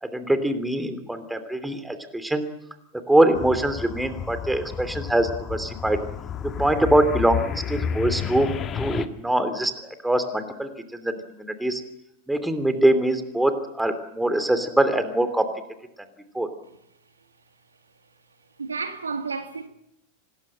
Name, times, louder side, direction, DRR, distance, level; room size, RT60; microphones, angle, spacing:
voice 1, 0.0-2.5 3.1-6.0 6.6-8.5 8.7-11.8 12.3-15.5 16.3-16.5, right 1 dB, 5° right, 2.9 m, -23 dB
sound 1, 3.3-9.1, left 8 dB, 25° left, 1.4 m, -31 dB
voice 2, 18.6-19.7, right 4 dB, 75° right, 2.1 m, -31 dB
26.5 x 19.5 x 7.9 m
figure-of-eight pair, 90°, 0 cm